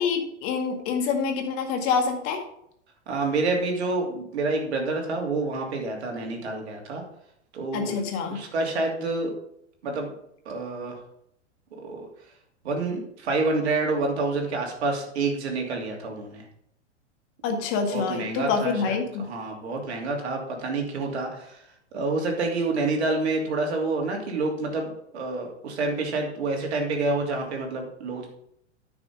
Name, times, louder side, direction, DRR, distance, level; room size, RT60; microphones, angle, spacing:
voice 1, 0.0-2.4 7.7-8.4 17.4-19.3, left 5 dB, 40° left, 4 dB, 1.9 m, -26 dB
voice 2, 3.1-7.0 7.5-7.9 8.3-9.3 9.8-10.1 10.5-10.9 11.8-12.1 12.6-16.4 17.9-18.9 19.3-21.6 21.9-24.9 25.1-28.3, right 3 dB, 60° right, 1 dB, 2.8 m, -28 dB
9.9 x 6.2 x 5.3 m, 0.73 s
figure-of-eight pair, 95°, 36 cm